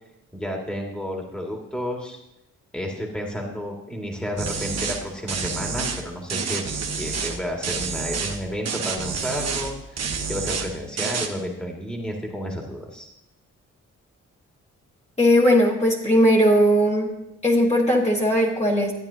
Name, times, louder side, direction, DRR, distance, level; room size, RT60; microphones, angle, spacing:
voice 1, 0.3-2.2 2.7-13.1, equal, 5° left, 0 dB, 2.2 m, -31 dB
sound 1, 4.4-5.0 5.3-6.0 6.3-7.4 7.6-8.4 8.7-9.7 10.0-10.7 11.0-11.3, right 5 dB, 50° right, 1.2 m, -28 dB
voice 2, 15.2-17.1 17.4-18.9, equal, 20° left, -3 dB, 2.0 m, -18 dB
13.5 x 8.8 x 2.9 m, 0.84 s
supercardioid pair, 50°, 32 cm